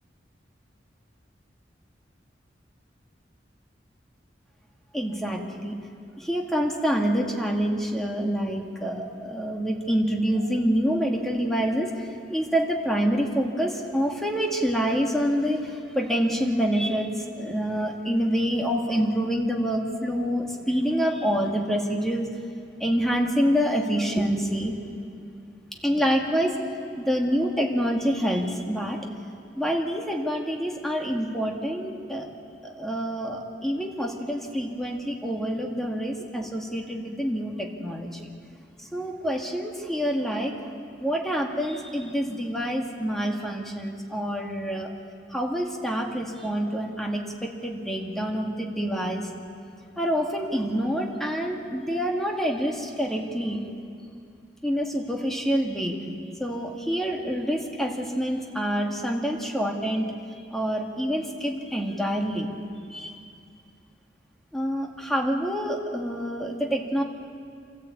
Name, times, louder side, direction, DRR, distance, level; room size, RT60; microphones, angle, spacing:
voice 1, 4.9-5.8 6.2-22.3 22.8-24.7 25.8-26.6 27.0-29.0 29.6-32.3 32.6-38.3 38.9-40.5 41.0-44.9 45.3-49.3 50.0-53.6 54.6-56.0 56.4-62.5 62.9-63.1 64.5-67.0, equal, ahead, 0 dB, 2.1 m, -27 dB
27.0 x 14.0 x 8.6 m, 2.4 s
head